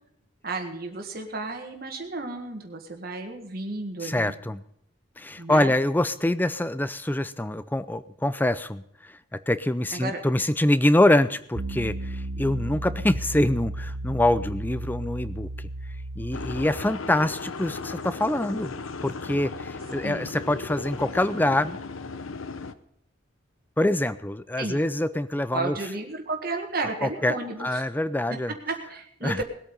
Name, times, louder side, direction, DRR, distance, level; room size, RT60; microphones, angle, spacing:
voice 1, 0.4-4.3 5.4-5.7 9.9-10.2 20.0-20.3 24.6-24.8 25.5-27.8 28.7-29.4, right 3 dB, 45° right, 3 dB, 1.8 m, -33 dB
voice 2, 4.0-4.6 5.2-15.5 16.2-18.7 19.0-21.8 23.8-25.8 27.0-28.5 29.2-29.4, left 1 dB, 10° left, 14 dB, 0.5 m, -25 dB
Piano, 11.6-16.7, right 1 dB, 70° right, 1.1 m, -34 dB
sound 1, 16.3-22.7, left 4 dB, 85° left, 0.8 m, -36 dB
20.0 x 8.7 x 5.4 m, 0.73 s
head